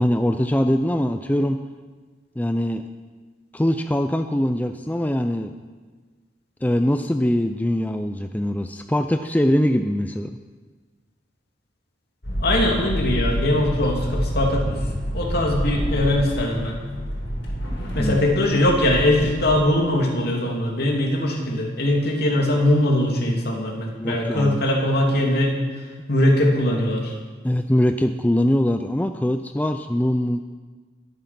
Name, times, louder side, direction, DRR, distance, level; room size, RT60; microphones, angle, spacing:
voice 1, 0.0-1.6 2.4-2.8 3.5-5.5 6.6-10.3 18.0-18.3 24.0-24.6 27.4-30.4, left 1 dB, 10° left, 7 dB, 0.5 m, -22 dB
sound 1, 12.2-19.6, equal, 75° left, 4.9 m, -28 dB
voice 2, 12.4-14.8 15.1-16.8 17.9-25.5 26.1-27.1, left 1 dB, 60° left, 0 dB, 2.9 m, -21 dB
21.0 x 9.1 x 5.9 m, 1.4 s
head